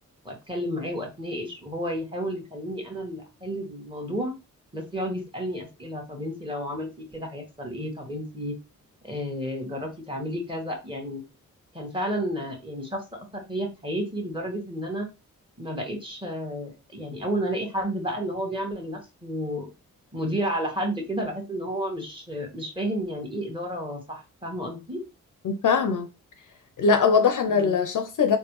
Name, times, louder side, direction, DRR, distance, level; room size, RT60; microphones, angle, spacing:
voice 1, 0.2-4.3 4.7-8.6 9.0-11.2 11.7-13.0 13.3-15.1 15.6-19.7 20.1-25.0 27.5-27.8, equal, 15° right, 1.3 m, -31 dB
voice 2, 25.4-26.1 26.8-28.4, left 5 dB, 60° left, 0.6 m, -21 dB
3.3 x 2.2 x 3.0 m
supercardioid pair, 45°, 36 cm